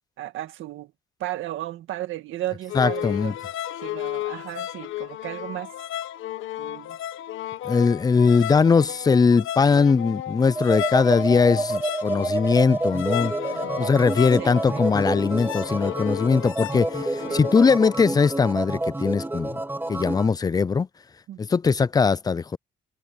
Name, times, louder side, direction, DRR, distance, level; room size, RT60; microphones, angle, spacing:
voice 1, 0.2-0.9 1.2-3.4 3.8-5.7 6.6-7.0 13.5-13.9 14.4-14.9 17.2-17.4 21.3-21.4, right 14 dB, 80° right, 1.8 m, -34 dB
sound 1, 2.7-18.1, left 12 dB, 85° left, 1.3 m, -34 dB
voice 2, 2.7-3.3 7.6-13.3 13.8-19.6 19.9-20.9 21.4-22.6, left 5 dB, 20° left, 0.4 m, -20 dB
sound 2, 10.5-20.3, right 2 dB, 10° right, 2.6 m, -29 dB
cardioid pair, 90°, 20 cm